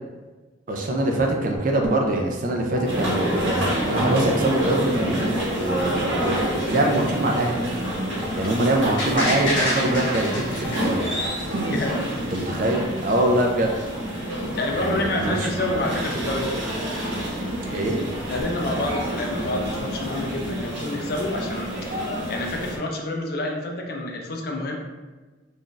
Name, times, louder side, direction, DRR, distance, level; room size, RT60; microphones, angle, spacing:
voice 1, 0.7-3.6 3.9-7.6 8.4-11.1 11.5-11.8 12.3-13.7 14.8-15.5 17.7-18.0, right 1 dB, 45° right, 1 dB, 0.4 m, -23 dB
sound 1, 1.6-1.7 2.2-2.3 2.8-2.9 3.4-3.5 4.0-4.1 4.6-4.7 5.2-5.3 5.8-5.9 6.4-6.5 7.0-7.1 7.6-7.7 8.2-8.3 8.8-9.0 9.4-9.6 10.0-10.1 10.6-10.8 11.2-11.4 11.9-12.0 12.5-12.6 13.1-13.2 13.7-13.8 14.3-14.4, left 1 dB, 5° left, 0.5 m, -36 dB
sound 2, 2.8-22.8, equal, 85° right, 0.9 m, -28 dB
voice 2, 5.8-6.1 10.7-10.9 11.7-12.1 14.3-16.6 18.3-21.7 22.3-24.8, left 1 dB, 50° left, 1 dB, 0.4 m, -28 dB
sound 3, 9.0-11.9 12.3-12.4, left 1 dB, 80° left, 0.9 m, -28 dB
2.5 x 2.3 x 3.7 m, 1.3 s
head